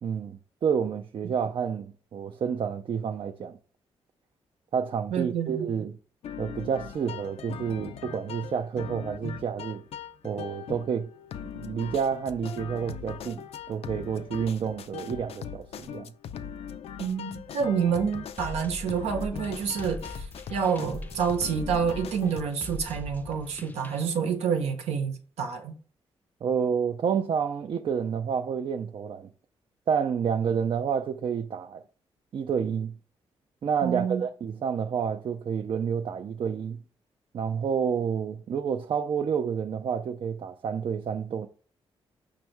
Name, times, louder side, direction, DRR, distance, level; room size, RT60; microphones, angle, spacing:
voice 1, 0.0-3.6 4.7-6.0 6.4-9.8 10.2-11.1 11.5-16.1 26.4-29.3 29.9-31.8 32.3-32.9 33.6-36.8 37.3-41.5, right 7 dB, 55° right, 0.4 m, -29 dB
voice 2, 5.1-5.7 17.0-20.2 20.5-25.7 33.8-34.2, right 6 dB, 90° right, 0.7 m, -28 dB
sound 1, 6.2-22.5, left 8 dB, 70° left, 0.4 m, -40 dB
sound 2, 18.4-24.0, left 1 dB, 15° left, 0.5 m, -41 dB
5.3 x 2.2 x 4.4 m
cardioid pair, 75°, 11 cm